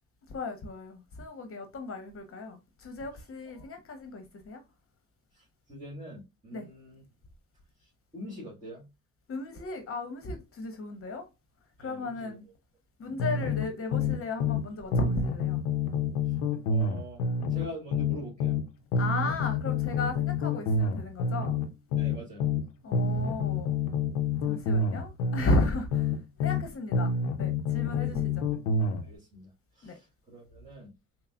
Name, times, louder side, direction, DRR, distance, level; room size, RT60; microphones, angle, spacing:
voice 1, 0.3-4.6 6.5-6.6 9.3-11.2 11.8-12.4 13.0-15.6 19.0-21.6 22.8-23.8 24.4-26.1 26.4-27.1 27.4-28.3 29.8-30.0, left 2 dB, 40° left, 1.0 m, -34 dB
voice 2, 3.1-3.7 5.3-7.0 7.8-8.9 11.8-12.4 13.0-13.1 16.2-16.4 16.7-17.2 17.5-18.6 22.0-22.5 23.0-23.3 25.8-25.9 28.0-28.1 29.0-30.9, equal, 20° right, 2.0 m, -45 dB
sound 1, 13.2-14.6 14.9-18.6 18.9-22.6 22.9-26.6 26.9-29.0, left 4 dB, 85° left, 0.6 m, -28 dB
5.5 x 2.1 x 2.3 m
hypercardioid pair, 60°, 33 cm